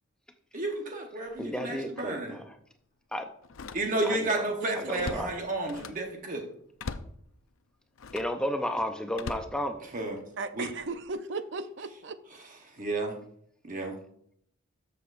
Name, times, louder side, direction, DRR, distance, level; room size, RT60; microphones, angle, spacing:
voice 1, 0.5-2.4 3.7-6.5 9.9-10.2 10.5-10.7 12.8-13.2 13.7-14.0, right 2 dB, 40° right, 2 dB, 1.0 m, -31 dB
Slam, 1.3-1.5 2.0-2.1 3.4-4.2 4.6-6.1 6.8-7.2 8.0-8.4 9.1-10.2 10.8-11.1, left 4 dB, 75° left, 0.5 m, -41 dB
voice 2, 1.4-2.5 3.1-3.3 4.0-4.4 4.7-5.4 8.1-9.8, equal, 5° left, 6 dB, 0.4 m, -33 dB
voice 3, 4.6-5.3 10.4-12.2, right 3 dB, 55° right, 11 dB, 0.5 m, -37 dB
13.0 x 6.8 x 2.5 m, 0.70 s
head